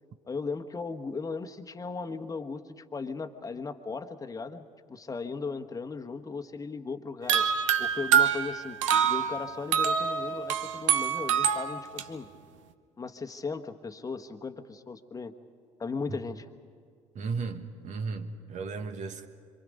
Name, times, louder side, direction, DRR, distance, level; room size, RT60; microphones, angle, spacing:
voice 1, 0.3-7.5 7.8-12.3 13.0-15.3 15.8-16.5, left 4 dB, 20° left, 1.3 m, -37 dB
sound 1, 7.3-12.0, right 8 dB, 75° right, 0.8 m, -26 dB
voice 2, 17.1-19.3, right 4 dB, 45° right, 1.4 m, -35 dB
26.5 x 25.0 x 5.3 m
figure-of-eight pair, 55°, 16 cm